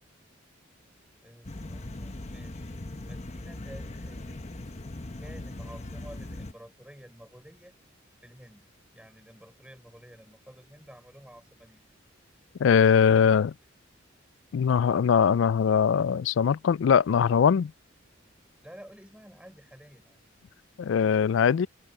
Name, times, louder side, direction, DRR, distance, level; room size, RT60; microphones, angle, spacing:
voice 1, 1.2-4.4 5.2-7.7 8.2-8.7 8.9-11.9 13.2-13.4 18.6-20.2, equal, 5° right, 6.5 m, -51 dB
sound 1, 1.4-6.5, left 2 dB, 35° left, 0.9 m, -39 dB
voice 2, 12.6-13.5 14.5-17.7 20.8-21.7, left 7 dB, 65° left, 0.3 m, -21 dB
head